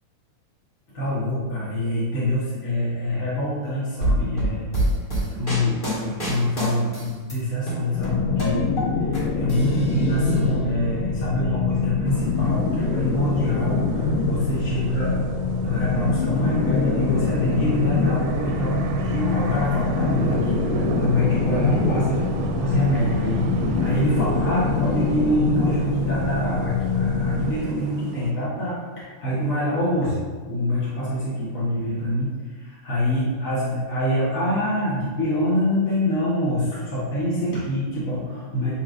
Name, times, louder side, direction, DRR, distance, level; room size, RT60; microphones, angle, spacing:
voice 1, 0.9-4.7 5.3-8.7 9.1-15.2 15.6-22.3 22.6-30.2 30.5-38.7, left 1 dB, 65° left, -9 dB, 0.8 m, -25 dB
sound 1, 4.0-7.3 7.7-9.2 9.5-10.4, right 1 dB, 25° left, 1.1 m, -26 dB
sound 2, 7.9-27.5, left 4 dB, 80° left, 1.7 m, -24 dB
sound 3, 12.1-28.3, right 6 dB, 85° right, 2.2 m, -34 dB
7.6 x 5.6 x 2.6 m, 1.5 s
omnidirectional pair, 3.8 m